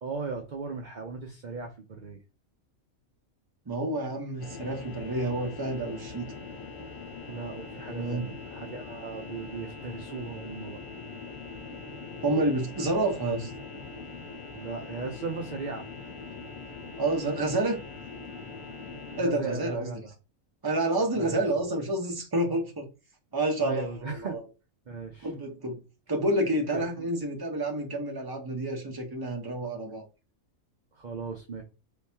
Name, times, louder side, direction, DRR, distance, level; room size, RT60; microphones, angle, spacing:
voice 1, 0.0-2.2 7.3-10.8 14.5-15.9 19.1-20.1 21.1-21.4 23.6-24.4 24.9-25.3 26.7-27.1 30.9-31.6, right 4 dB, 45° right, 0.7 m, -37 dB
voice 2, 3.7-6.3 7.9-8.2 12.2-13.5 17.0-17.8 19.2-19.9 20.6-22.9 23.3-24.4 25.2-25.8 26.1-30.1, right 1 dB, 20° right, 0.8 m, -29 dB
sound 1, 4.4-19.2, left 4 dB, 75° left, 1.3 m, -42 dB
3.6 x 3.6 x 2.8 m
omnidirectional pair, 1.4 m